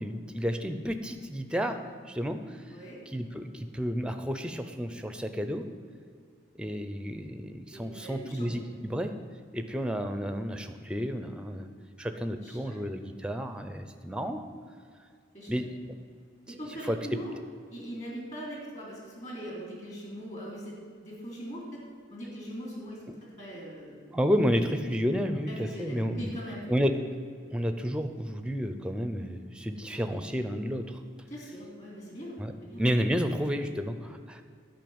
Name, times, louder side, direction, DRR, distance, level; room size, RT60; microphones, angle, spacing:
voice 1, 0.0-1.8 2.1-2.8 3.1-5.7 6.5-9.1 9.5-11.7 12.0-14.4 15.5-15.9 16.5-16.6 16.8-17.2 23.1-23.2 24.1-26.3 26.7-26.9 27.5-31.0 32.4-32.5 32.8-34.4, equal, 5° right, 8 dB, 0.6 m, -31 dB
voice 2, 2.7-3.0 7.7-8.7 12.4-12.8 15.3-15.5 16.5-17.3 17.7-21.8 22.1-23.0 23.4-24.0 25.5-26.7 31.3-32.4 32.6-32.8, equal, 40° left, -2 dB, 3.1 m, -41 dB
11.0 x 5.6 x 8.7 m, 2.1 s
head